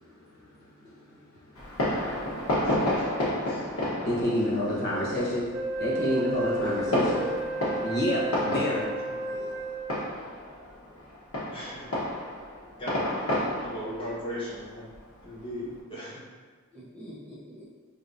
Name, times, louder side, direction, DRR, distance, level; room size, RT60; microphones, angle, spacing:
voice 1, 0.0-3.2 3.7-5.4 5.8-7.0 7.8-8.9, left 1 dB, 50° left, -6 dB, 1.0 m, -30 dB
Fireworks, 1.6-15.7, left 1 dB, 85° left, 1.1 m, -32 dB
voice 2, 2.4-4.1 8.4-8.5 11.5-12.1 12.7-13.3 13.6-14.9 15.2-16.2, equal, 25° left, -9 dB, 1.4 m, -39 dB
voice 3, 4.0-5.3 6.0-7.5 7.8-8.2 9.2-9.7 16.7-17.7, right 1 dB, 5° left, -10 dB, 0.7 m, -39 dB
Wind instrument woodwind instrument, 5.5-10.3, right 1 dB, 30° right, 0.8 m, -33 dB
5.2 x 3.3 x 2.6 m, 1.5 s
head